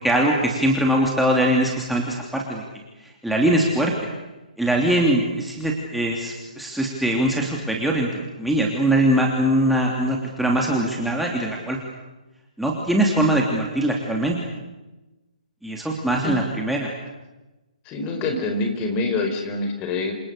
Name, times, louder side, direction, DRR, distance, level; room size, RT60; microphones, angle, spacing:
voice 1, 0.0-2.6 3.0-3.9 4.6-11.8 12.6-14.4 15.6-16.9, right 1 dB, ahead, -1 dB, 3.0 m, -22 dB
voice 2, 17.9-20.1, left 3 dB, 25° left, 5 dB, 4.6 m, -25 dB
28.5 x 27.0 x 6.8 m, 1.1 s
figure-of-eight pair, 135°, 4 cm